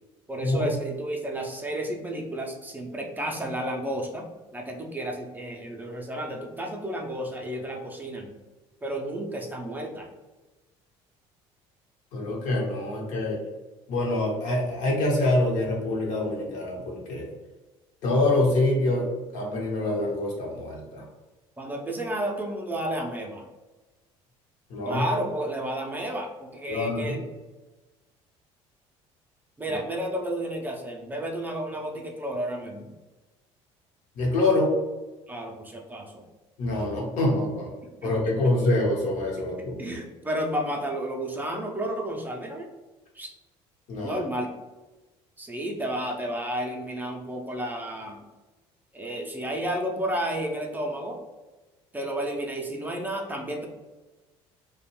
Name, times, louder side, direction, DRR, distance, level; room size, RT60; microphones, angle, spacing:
voice 1, 0.3-8.3 8.8-10.1 21.6-23.5 24.8-27.2 29.6-32.9 35.3-36.2 38.0-38.1 39.8-42.7 43.1-43.3 44.0-44.5 45.4-48.2 48.9-51.2 51.9-53.7, right 1 dB, 15° right, 1 dB, 0.4 m, -32 dB
voice 2, 12.1-13.4 13.9-17.3 18.0-19.1 19.3-21.1 24.7-25.0 26.7-27.2 29.7-29.8 34.2-34.7 36.6-37.7 38.0-40.0 43.9-44.2, left 2 dB, 70° left, -2 dB, 0.9 m, -25 dB
2.4 x 2.1 x 2.9 m, 1.2 s
supercardioid pair, 90°, 13 cm